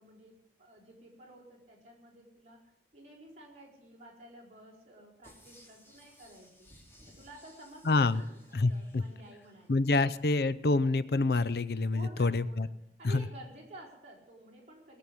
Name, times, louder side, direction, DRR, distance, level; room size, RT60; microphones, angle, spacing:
voice 1, 0.0-6.7 7.1-10.1 11.9-12.7 13.0-15.0, right 1 dB, 35° right, -3 dB, 4.8 m, -52 dB
sound 1, 5.2-9.7 10.1-10.2, equal, 15° left, 3.1 m, -59 dB
voice 2, 7.9-8.2 8.5-9.0 9.7-12.7 13.1-13.2, left 3 dB, 60° left, 16 dB, 0.5 m, -27 dB
20.0 x 7.8 x 8.5 m, 0.81 s
head